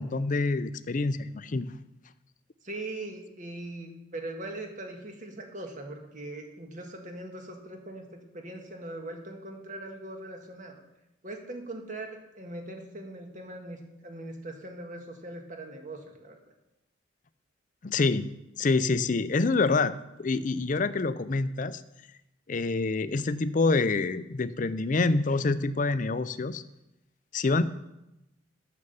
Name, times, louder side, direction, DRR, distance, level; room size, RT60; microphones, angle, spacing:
voice 1, 0.0-1.7 17.8-18.3 18.6-19.9 20.2-21.8 22.5-26.6 27.3-27.7, left 3 dB, 45° left, 14 dB, 0.5 m, -26 dB
voice 2, 2.6-10.8 11.2-16.4, right 2 dB, 45° right, 3 dB, 1.7 m, -41 dB
9.9 x 6.9 x 6.9 m, 0.92 s
head